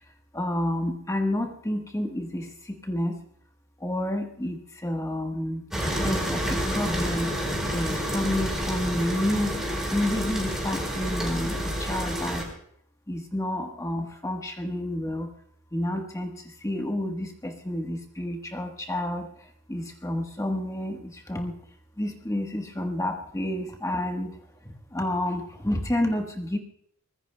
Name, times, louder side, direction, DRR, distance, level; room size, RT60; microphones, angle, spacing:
voice 1, 0.3-3.1 3.8-4.6 4.8-5.6 6.0-7.3 7.7-9.6 9.9-12.5 13.1-15.3 15.7-16.3 16.6-19.3 19.7-21.5 22.0-24.3 24.9-26.6, left 1 dB, 15° left, 3 dB, 1.2 m, -29 dB
sound 1, 5.7-12.4, equal, ahead, 4.2 m, -29 dB
24.0 x 20.5 x 2.2 m, 0.66 s
head